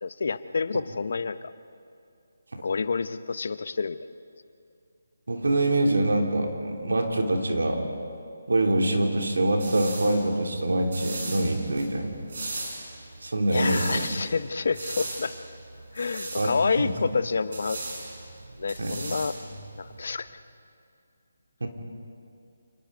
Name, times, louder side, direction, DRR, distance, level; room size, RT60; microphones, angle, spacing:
voice 1, 0.0-1.5 2.6-4.0 13.5-15.3 15.9-17.8 18.6-19.3 19.8-20.3, left 4 dB, 60° left, 13 dB, 0.8 m, -28 dB
voice 2, 5.3-7.9 8.5-12.1 13.2-14.1 16.4-16.9 18.8-19.0 21.6-21.7, right 1 dB, 90° right, 2 dB, 3.3 m, -25 dB
sound 1, 9.2-20.1, right 2 dB, 55° right, 5.7 m, -39 dB
28.0 x 19.5 x 5.3 m, 2.5 s
hypercardioid pair, 165°, 0 cm